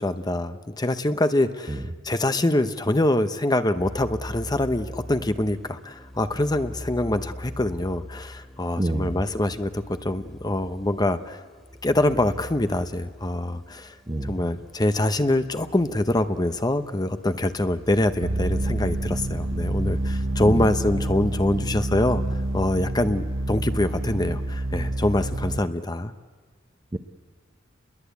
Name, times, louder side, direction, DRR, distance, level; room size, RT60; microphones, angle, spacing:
voice 1, 0.0-11.4 11.8-13.9 14.2-22.2 22.5-26.1, left 1 dB, 20° left, 10 dB, 0.9 m, -24 dB
sound 1, 3.8-22.8, left 1 dB, ahead, 2.2 m, -43 dB
voice 2, 8.8-9.2 14.1-14.3 20.4-20.7 26.9-27.0, right 1 dB, 25° right, 10 dB, 0.9 m, -27 dB
sound 2, 18.2-25.6, right 1 dB, 85° right, 1.2 m, -27 dB
29.0 x 22.0 x 8.3 m, 1.5 s
head